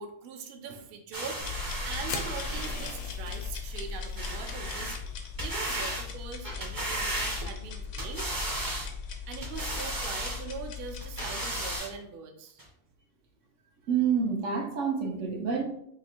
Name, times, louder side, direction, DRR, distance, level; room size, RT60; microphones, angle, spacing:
voice 1, 0.0-1.4 1.8-5.0 5.4-8.3 9.3-12.6, right 5 dB, 65° right, 5 dB, 0.7 m, -42 dB
sound 1, 1.1-3.1 4.1-5.0 5.4-6.1 6.4-7.7 8.0-8.9 9.4-10.4 11.0-11.9 12.6-12.7, right 1 dB, 25° right, 0.5 m, -35 dB
sound 2, 1.4-11.8, left 5 dB, 85° left, 0.9 m, -39 dB
sound 3, 2.1-4.3, left 5 dB, 60° left, 0.6 m, -40 dB
voice 2, 13.9-15.6, right 6 dB, 90° right, 2 dB, 1.1 m, -28 dB
2.9 x 2.5 x 4.2 m, 0.73 s
omnidirectional pair, 1.2 m